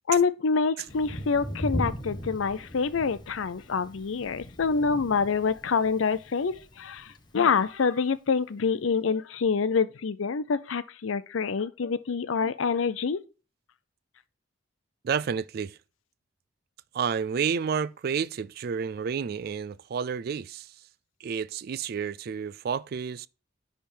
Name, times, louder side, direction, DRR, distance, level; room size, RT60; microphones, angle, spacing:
voice 1, 0.1-7.0 7.3-13.2, left 5 dB, 90° left, 0.5 m, -26 dB
Thunder, 0.9-7.7, equal, 20° left, 1.0 m, -38 dB
voice 2, 15.0-15.8 16.9-20.7 21.2-23.3, right 6 dB, 50° right, 0.3 m, -30 dB
10.5 x 3.5 x 4.3 m
head